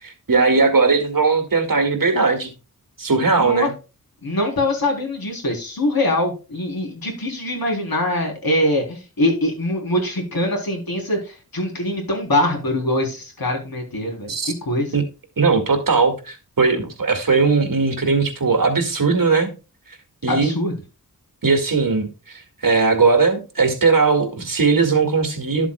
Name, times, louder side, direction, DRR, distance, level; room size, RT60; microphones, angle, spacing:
voice 1, 0.0-2.5 3.0-3.7 14.3-14.5 14.9-15.1 15.4-19.5 20.2-20.5 21.4-25.7, right 4 dB, 65° right, 2.0 m, -18 dB
voice 2, 3.3-3.7 4.2-14.9 20.3-20.7, left 1 dB, 70° left, 3.7 m, -23 dB
12.5 x 7.5 x 2.3 m
wide cardioid pair, 85°, 36 cm